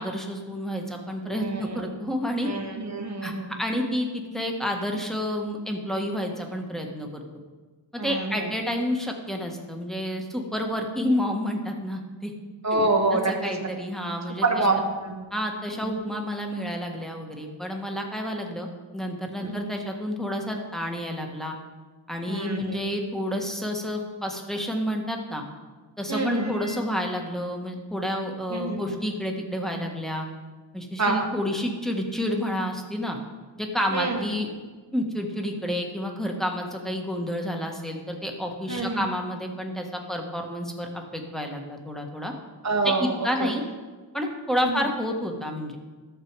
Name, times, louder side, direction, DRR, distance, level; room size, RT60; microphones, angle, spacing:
voice 1, 0.0-2.5 3.2-7.2 7.9-12.3 12.7-12.8 13.1-14.7 15.3-18.7 18.9-21.6 22.1-25.4 26.0-30.3 30.7-33.2 33.6-34.5 34.9-42.3 42.8-43.6 44.1-45.8, equal, ahead, 1 dB, 1.6 m, -29 dB
voice 2, 1.3-1.9 2.4-3.6 8.0-8.5 12.6-13.3 13.6-13.7 14.4-15.2 15.7-16.0 19.4-19.7 22.3-22.8 26.1-26.8 28.5-29.0 31.0-31.3 33.9-34.2 38.7-39.1 42.6-43.1 43.4-43.5 44.6-44.9, right 3 dB, 35° right, 2 dB, 1.2 m, -27 dB
13.0 x 6.8 x 4.8 m, 1.4 s
wide cardioid pair, 40°, 50 cm